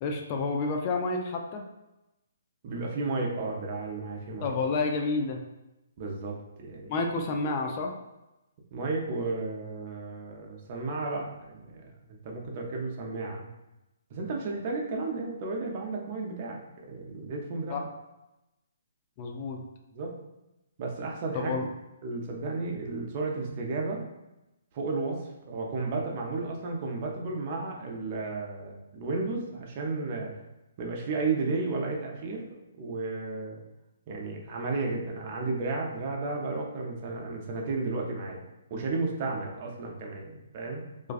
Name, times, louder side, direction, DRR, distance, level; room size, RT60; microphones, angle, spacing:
voice 1, 0.0-1.6 4.4-5.4 6.9-7.9 17.7-17.8 19.2-19.6 21.3-21.7, left 3 dB, 35° left, 2 dB, 0.3 m, -29 dB
voice 2, 2.6-4.5 6.0-7.0 8.7-13.5 14.1-17.8 19.9-20.1 20.8-21.5 22.0-24.0 24.7-30.3 30.8-33.6 34.1-38.5 38.7-40.8, right 3 dB, 40° right, 0 dB, 0.5 m, -33 dB
2.4 x 2.2 x 2.4 m, 0.96 s
hypercardioid pair, 140°, 0 cm